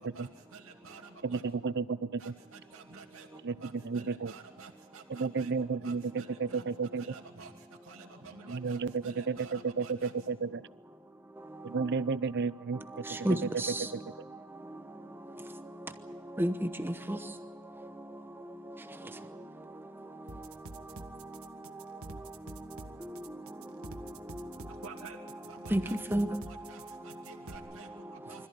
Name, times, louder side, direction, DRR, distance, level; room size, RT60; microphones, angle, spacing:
voice 1, 0.1-1.4 2.2-3.3 3.6-5.5 5.8-6.6 7.0-7.5 7.8-10.1 24.7-25.2 25.5-26.0 26.5-28.5, right 5 dB, 70° right, 2.5 m, -51 dB
voice 2, 1.2-2.3 3.4-4.3 5.1-7.0 8.5-10.6 11.6-13.0, right 5 dB, 55° right, 0.6 m, -32 dB
voice 3, 11.4-12.2 12.7-28.5, right 1 dB, 10° right, 1.0 m, -38 dB
sound 1, 20.3-27.6, right 2 dB, 90° right, 1.7 m, -47 dB
25.0 x 14.5 x 9.7 m
head